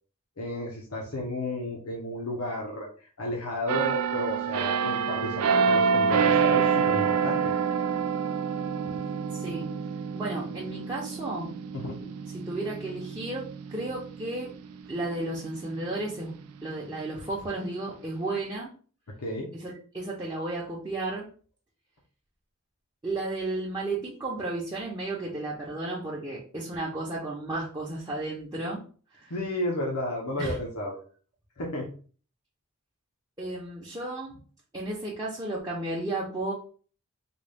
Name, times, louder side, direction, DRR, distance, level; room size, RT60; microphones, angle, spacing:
voice 1, 0.4-7.5 11.7-12.1 19.2-19.5 29.3-31.0 31.6-31.9, left 1 dB, 80° left, -1 dB, 0.8 m, -32 dB
sound 1, 3.7-15.2 15.7-15.9, right 6 dB, 80° right, 0.4 m, -27 dB
voice 2, 9.3-9.7 10.1-11.5 12.3-14.5 14.9-16.4 16.6-18.7 19.5-21.3 23.0-28.8 29.1-29.3 30.4-30.6 33.4-34.3 34.7-36.5, right 2 dB, 20° right, -5 dB, 0.7 m, -33 dB
3.9 x 2.3 x 3.4 m, 0.41 s
head